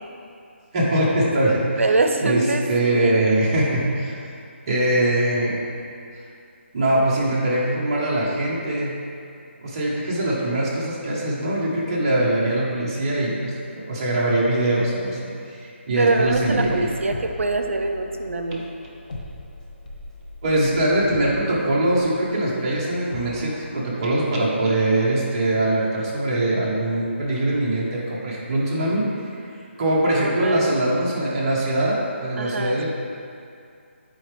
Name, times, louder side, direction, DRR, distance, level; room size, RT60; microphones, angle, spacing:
voice 1, 0.7-1.8 2.2-4.2 4.7-5.6 6.7-8.9 9.6-16.9 20.4-29.0 29.8-32.9, right 1 dB, 25° right, -6 dB, 1.2 m, -22 dB
voice 2, 1.8-3.2 16.0-18.6 30.1-30.7 32.4-32.9, right 3 dB, 80° right, 5 dB, 0.7 m, -24 dB
sound 1, 16.1-24.2, left 2 dB, 35° left, 0.7 m, -39 dB
8.4 x 4.7 x 3.3 m, 2.5 s
hypercardioid pair, 175°, 7 cm